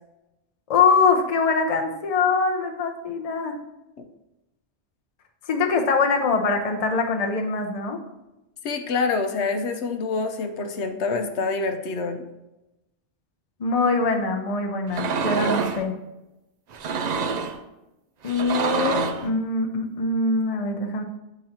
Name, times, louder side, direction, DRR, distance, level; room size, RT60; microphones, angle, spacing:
voice 1, 0.7-3.6 5.5-8.0 13.6-16.0 18.2-21.0, left 4 dB, 40° left, 3 dB, 0.6 m, -23 dB
voice 2, 8.6-12.2, left 4 dB, 80° left, 6 dB, 0.9 m, -26 dB
sound 1, 14.9-15.8 16.7-17.6 18.2-19.3, right 5 dB, 55° right, 0.5 m, -26 dB
9.0 x 3.8 x 2.8 m, 0.97 s
omnidirectional pair, 1.1 m